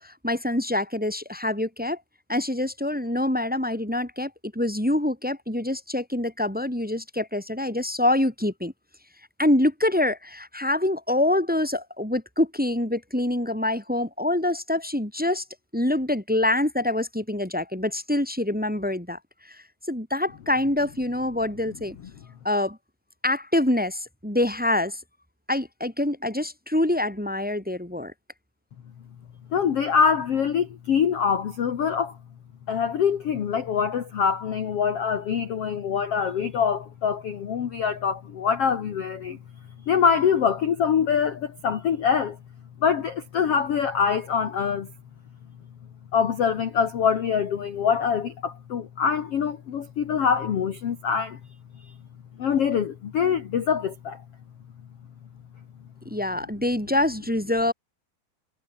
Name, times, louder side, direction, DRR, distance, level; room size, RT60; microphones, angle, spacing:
voice 1, 0.0-2.0 2.3-8.7 9.4-15.4 15.7-21.9 22.4-22.8 23.2-25.0 25.5-28.1 56.0-57.7, left 1 dB, ahead, 3.3 m, -25 dB
voice 2, 29.5-32.2 32.7-39.4 39.9-42.4 42.8-44.9 46.1-51.4 52.4-54.2, left 7 dB, 50° left, 2.2 m, -24 dB
omnidirectional pair, 4.2 m